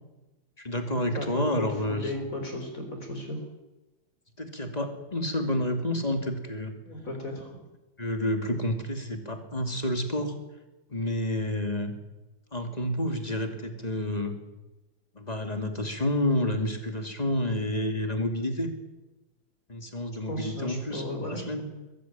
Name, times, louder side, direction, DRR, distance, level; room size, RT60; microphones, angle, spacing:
voice 1, 0.6-2.1 4.4-6.7 8.0-10.3 10.9-11.9 12.5-14.3 15.1-18.7 19.7-21.6, left 1 dB, 20° left, 5 dB, 2.7 m, -29 dB
voice 2, 1.1-3.4 6.8-7.6 20.3-21.4, left 1 dB, 40° left, 3 dB, 4.3 m, -35 dB
22.0 x 15.0 x 9.0 m, 1.0 s
omnidirectional pair, 2.3 m